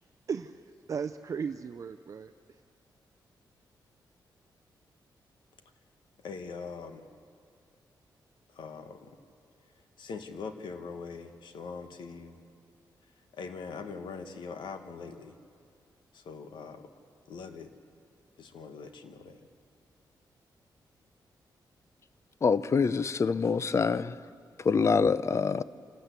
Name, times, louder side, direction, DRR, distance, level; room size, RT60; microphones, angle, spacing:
voice 1, 0.3-2.3, right 6 dB, 45° right, 0.5 m, -36 dB
voice 2, 6.2-7.1 8.5-9.2 10.0-12.4 13.4-15.4 16.1-16.9 17.3-17.7 18.4-19.5, left 5 dB, 85° left, 1.3 m, -42 dB
voice 3, 22.4-24.2 24.6-25.6, left 5 dB, 40° left, 0.5 m, -25 dB
27.0 x 12.5 x 8.2 m
wide cardioid pair, 120°, 8 cm